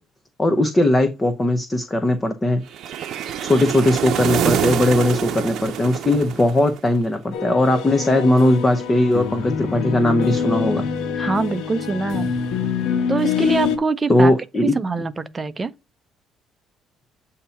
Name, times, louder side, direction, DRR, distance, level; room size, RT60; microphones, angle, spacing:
voice 1, 0.4-2.6 3.4-10.9 14.1-14.7, left 1 dB, 20° left, 0.7 m, -19 dB
sound 1, 2.7-7.0, right 9 dB, 60° right, 0.7 m, -25 dB
sound 2, 7.3-13.8, left 6 dB, 75° left, 1.2 m, -25 dB
voice 2, 11.2-12.3 13.1-14.3 14.6-15.7, right 3 dB, 20° right, 0.6 m, -24 dB
8.2 x 2.9 x 5.6 m
cardioid pair, 125°, 0 cm